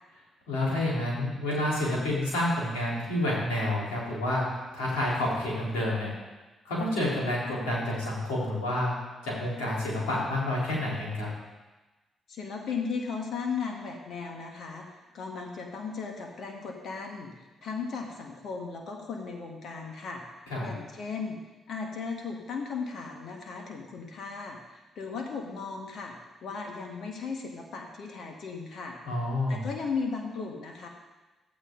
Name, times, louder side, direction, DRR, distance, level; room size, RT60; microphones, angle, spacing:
voice 1, 0.5-6.1 6.7-8.9 9.2-11.3 20.5-20.7 29.0-29.6, left 1 dB, 85° left, -5 dB, 3.7 m, -29 dB
voice 2, 12.3-20.2 20.6-21.4 21.7-26.1 26.4-29.0 29.5-30.9, left 5 dB, 65° left, 2 dB, 1.6 m, -36 dB
13.5 x 8.4 x 3.9 m, 1.2 s
hypercardioid pair, 50°, 0 cm